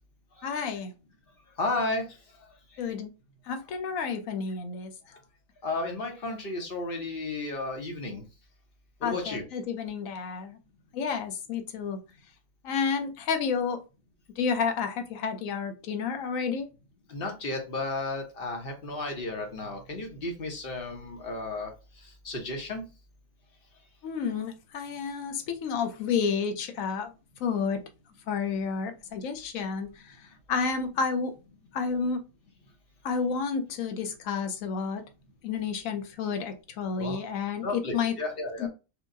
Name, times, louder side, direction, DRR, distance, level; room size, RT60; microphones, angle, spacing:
voice 1, 0.4-0.9 2.8-3.1 3.5-4.9 9.0-10.6 10.9-12.0 12.6-13.8 14.4-16.7 24.0-27.1 27.4-27.8 28.3-31.3 31.7-32.2 33.0-35.0 35.4-38.2 38.6-38.7, left 5 dB, 70° left, 7 dB, 1.1 m, -30 dB
voice 2, 1.6-2.0 5.6-8.2 9.0-9.4 17.1-21.7 22.2-22.8 37.0-37.2 37.6-38.7, left 2 dB, 45° left, 3 dB, 1.0 m, -33 dB
4.5 x 2.2 x 2.6 m, 0.29 s
omnidirectional pair, 1.5 m